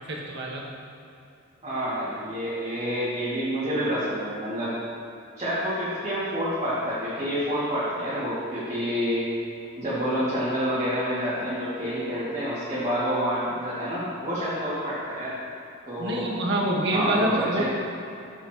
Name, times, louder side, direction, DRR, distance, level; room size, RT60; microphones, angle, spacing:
voice 1, 0.1-0.6 16.0-17.6, right 1 dB, 60° right, -2 dB, 1.4 m, -26 dB
voice 2, 1.6-4.7 5.4-9.3 9.8-15.3 15.9-16.3 16.9-17.6, equal, 30° right, -12 dB, 2.3 m, -28 dB
14.0 x 7.0 x 3.0 m, 2.7 s
head